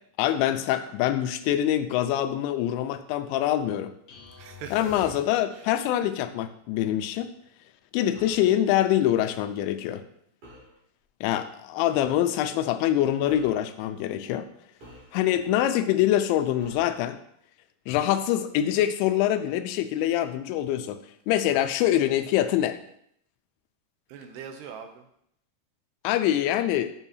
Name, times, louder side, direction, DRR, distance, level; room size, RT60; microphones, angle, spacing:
voice 1, 0.2-3.9 4.7-7.3 7.9-10.0 11.2-14.5 15.1-17.2 17.9-21.0 21.3-22.8 26.0-26.9, left 12 dB, 85° left, 9 dB, 2.8 m, -24 dB
sound 1, 4.1-5.8, left 4 dB, 55° left, 3.1 m, -47 dB
voice 2, 4.3-5.2 5.5-5.7 24.1-25.1, right 6 dB, 80° right, 6 dB, 2.6 m, -41 dB
sound 2, 8.1-8.5 10.4-10.8 12.0-12.2 13.3-13.7 14.8-15.5 16.6-17.0, equal, 35° right, 3.0 m, -49 dB
8.0 x 7.1 x 2.8 m, 0.70 s
omnidirectional pair, 5.2 m